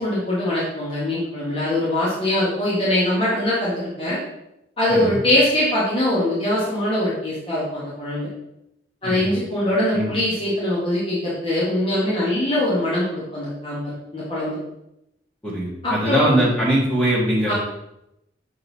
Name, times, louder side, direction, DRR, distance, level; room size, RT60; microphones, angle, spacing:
voice 1, 0.0-4.2 4.8-8.3 9.0-14.6 15.8-16.3 17.5-17.6, left 1 dB, 30° left, -8 dB, 1.5 m, -22 dB
voice 2, 15.4-17.5, right 1 dB, 5° left, -7 dB, 1.5 m, -21 dB
6.8 x 4.0 x 4.0 m, 0.84 s
head